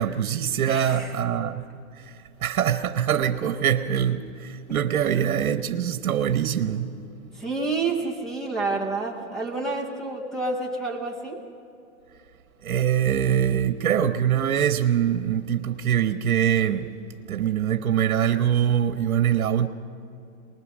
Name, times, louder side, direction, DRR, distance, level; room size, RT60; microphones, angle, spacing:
voice 1, 0.0-1.7 2.0-6.9 12.6-16.9 17.3-19.7, right 9 dB, 80° right, 1.0 m, -23 dB
voice 2, 0.7-1.1 4.7-4.8 7.3-11.4, right 3 dB, ahead, 0.6 m, -29 dB
23.5 x 20.0 x 6.2 m
hypercardioid pair, 165°, 42 cm